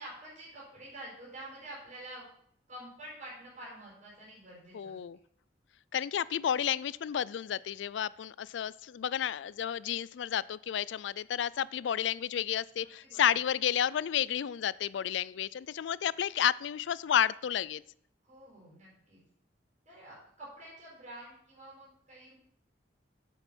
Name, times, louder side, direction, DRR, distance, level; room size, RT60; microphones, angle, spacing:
voice 1, 0.0-2.3 2.7-4.9 12.8-13.3 18.2-19.2 19.8-22.4, right 1 dB, 45° right, -6 dB, 5.0 m, -48 dB
voice 2, 4.7-5.2 5.9-17.8, left 9 dB, 80° left, 21 dB, 0.4 m, -31 dB
8.9 x 7.0 x 6.0 m, 0.68 s
head